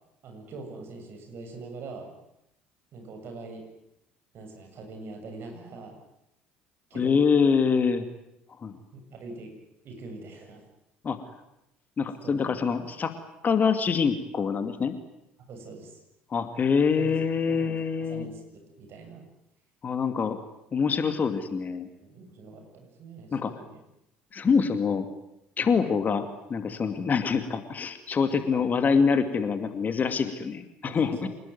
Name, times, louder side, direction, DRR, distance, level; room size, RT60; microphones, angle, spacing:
voice 1, 0.2-2.1 2.9-3.7 4.3-6.0 6.9-7.2 8.7-9.6 9.8-10.6 12.2-12.5 15.5-16.0 16.9-17.2 17.5-19.2 22.0-23.8 24.4-24.6 25.6-25.8 28.5-28.7 30.9-31.3, right 3 dB, 45° right, 4 dB, 7.8 m, -43 dB
voice 2, 7.0-8.0 8.6-8.7 11.0-11.2 12.0-13.1 13.4-15.0 16.3-18.3 19.8-20.4 20.7-21.9 23.3-23.5 24.3-25.0 25.6-31.3, left 5 dB, 35° left, 9 dB, 2.5 m, -25 dB
27.0 x 20.0 x 9.5 m, 0.82 s
figure-of-eight pair, 60°, 5 cm